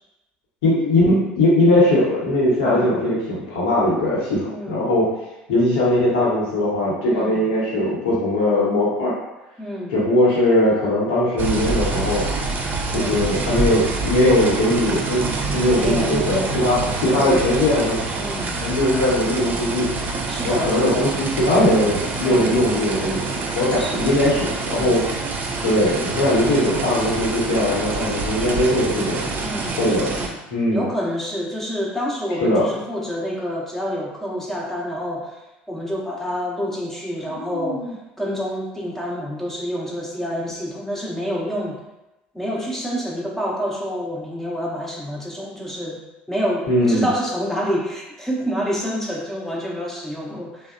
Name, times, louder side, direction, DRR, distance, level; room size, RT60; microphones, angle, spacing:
voice 1, 0.6-5.1 5.5-9.1 9.9-12.3 12.9-18.0 18.6-19.9 20.4-25.0 25.6-29.5 29.8-30.1 30.5-30.9 32.4-32.7 37.3-37.9 46.7-47.1, left 1 dB, 70° left, -6 dB, 0.9 m, -20 dB
voice 2, 2.6-3.1 4.5-4.9 7.1-7.5 9.6-10.0 12.9-13.3 15.7-16.4 17.1-17.5 18.2-18.6 20.3-21.1 22.2-22.6 23.8-24.1 24.7-25.1 29.4-30.4 30.7-35.4 35.7-41.8 42.3-46.0 46.3-50.7, equal, 5° left, -3 dB, 0.6 m, -28 dB
sound 1, 11.4-30.3, right 3 dB, 35° right, 0.4 m, -26 dB
2.6 x 2.0 x 2.4 m, 0.98 s
hypercardioid pair, 70°, 5 cm